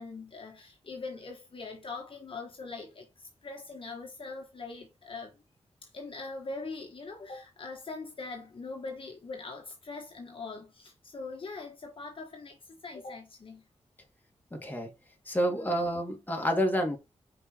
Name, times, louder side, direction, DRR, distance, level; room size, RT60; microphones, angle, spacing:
voice 1, 0.0-5.4 5.8-13.6 15.5-15.7, left 3 dB, 50° left, 1.3 m, -42 dB
voice 2, 14.5-14.9 15.3-17.0, equal, 15° left, 2.1 m, -29 dB
5.3 x 4.6 x 4.2 m
wide cardioid pair, 95°, 11 cm